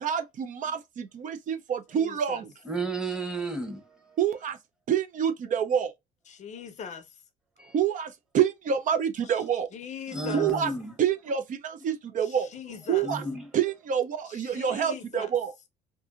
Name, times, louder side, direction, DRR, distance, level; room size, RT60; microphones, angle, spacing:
voice 1, 0.0-2.5 4.2-4.6 4.9-5.9 7.7-9.7 10.3-10.7 11.0-12.5 12.9-13.2 13.5-15.5, right 8 dB, 50° right, 0.5 m, -27 dB
voice 2, 1.9-2.4 6.3-7.2 9.7-10.5 12.2-13.1 14.3-15.3, left 7 dB, 45° left, 0.5 m, -41 dB
voice 3, 2.6-4.2 7.6-7.7 10.1-10.9 13.0-13.5, right 3 dB, 5° right, 1.0 m, -33 dB
2.6 x 2.6 x 2.4 m
cardioid pair, 110°, 17 cm